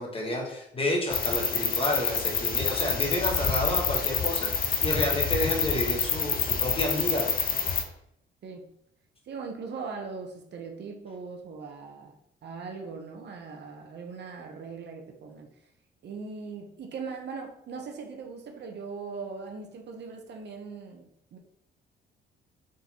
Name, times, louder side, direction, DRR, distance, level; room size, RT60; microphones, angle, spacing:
voice 1, 0.0-7.3, left 1 dB, 30° left, -1 dB, 1.3 m, -30 dB
sound 1, 1.1-7.8, left 6 dB, 45° left, 0.6 m, -27 dB
voice 2, 9.3-12.1 12.4-15.5 16.0-21.4, right 4 dB, 60° right, 3 dB, 0.7 m, -40 dB
3.9 x 3.8 x 2.9 m, 0.74 s
cardioid pair, 90°, 20 cm